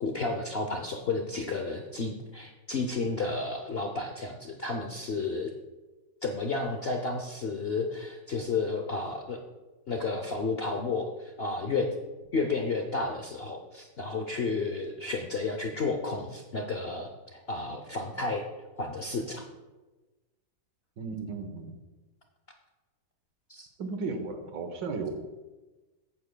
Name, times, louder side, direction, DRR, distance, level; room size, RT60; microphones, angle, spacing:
voice 1, 0.0-5.5 6.2-9.4 9.9-11.9 12.3-18.4 18.8-19.4 23.5-23.7, left 3 dB, 60° left, 3 dB, 0.6 m, -32 dB
voice 2, 21.0-21.7 23.8-25.2, right 4 dB, 80° right, 6 dB, 1.7 m, -35 dB
14.5 x 8.4 x 2.2 m, 1.2 s
omnidirectional pair, 1.9 m